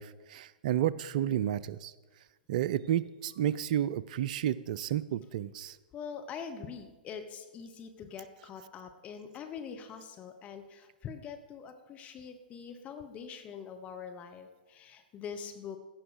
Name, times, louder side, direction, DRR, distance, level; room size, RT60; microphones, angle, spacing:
voice 1, 0.0-1.9 2.5-5.8, right 11 dB, 50° right, 19 dB, 0.4 m, -31 dB
voice 2, 5.9-15.8, left 6 dB, 25° left, 6 dB, 0.9 m, -44 dB
16.0 x 6.1 x 4.9 m, 1.2 s
figure-of-eight pair, 110°, 5 cm